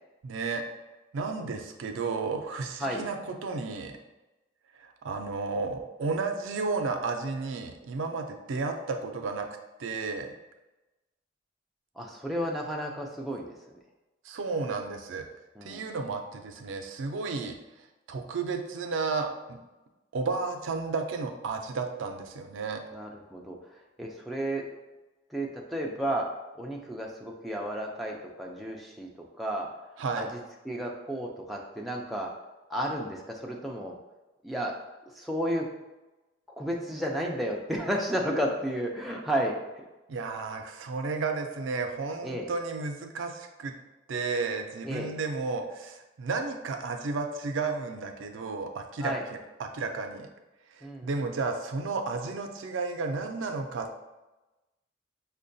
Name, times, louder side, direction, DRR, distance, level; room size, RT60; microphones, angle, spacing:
voice 1, 0.2-0.6 1.1-4.0 4.8-9.5 9.8-10.3 14.2-15.3 15.6-17.5 18.1-19.6 20.1-22.8 30.0-30.3 40.1-43.7 44.1-49.1 49.6-50.3 50.7-54.0, right 4 dB, 90° right, 5 dB, 0.4 m, -32 dB
voice 2, 12.0-13.5 15.6-15.8 22.9-23.6 24.0-24.6 25.3-26.3 26.6-29.1 29.4-29.7 30.2-30.3 30.6-32.3 32.7-33.9 34.4-34.7 35.2-35.6 36.6-39.5 42.2-42.5 44.8-45.1 49.0-49.2 50.8-51.1, equal, ahead, -2 dB, 0.4 m, -32 dB
5.4 x 2.2 x 2.6 m, 1.1 s
head